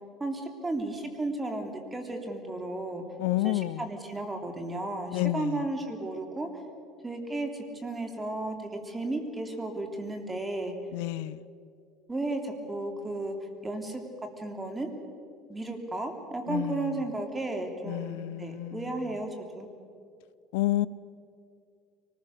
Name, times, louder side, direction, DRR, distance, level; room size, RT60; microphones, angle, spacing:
voice 1, 0.2-3.0 3.4-6.5 7.0-10.7 12.1-13.4 13.6-14.0 14.4-14.9 15.5-19.3 19.5-19.7, right 2 dB, 15° right, 4 dB, 3.1 m, -34 dB
voice 2, 3.2-3.9 5.1-5.7 10.9-11.5 16.5-17.0 17.8-19.1 20.5-20.9, left 17 dB, 80° left, 18 dB, 0.5 m, -30 dB
24.5 x 20.0 x 6.6 m, 2.3 s
supercardioid pair, 110°, 0 cm